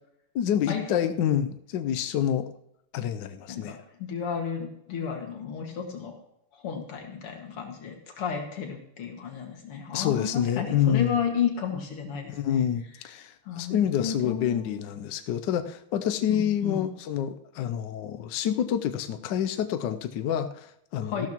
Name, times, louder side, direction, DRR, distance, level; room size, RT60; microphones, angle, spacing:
voice 1, 0.3-2.5 2.9-3.8 9.9-11.2 12.3-21.3, left 9 dB, 70° left, 9 dB, 1.2 m, -28 dB
voice 2, 3.5-6.2 6.6-12.6 13.5-14.8 16.3-16.9 21.0-21.3, left 7 dB, 90° left, 2 dB, 2.8 m, -32 dB
14.5 x 12.0 x 3.0 m, 0.77 s
omnidirectional pair, 2.4 m